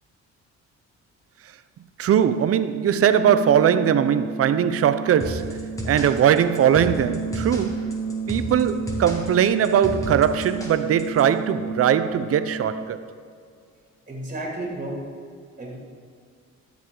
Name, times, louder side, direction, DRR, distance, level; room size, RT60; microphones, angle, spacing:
voice 1, 2.0-8.0 8.3-13.0, right 9 dB, 50° right, 0.6 m, -20 dB
sound 1, 2.8-12.8, right 3 dB, 65° left, 1.3 m, -32 dB
sound 2, 5.2-11.2, equal, 10° left, 2.0 m, -32 dB
voice 2, 14.1-15.0 15.6-15.8, right 1 dB, 25° right, 2.7 m, -32 dB
12.5 x 7.1 x 3.8 m
cardioid pair, 90°, 30 cm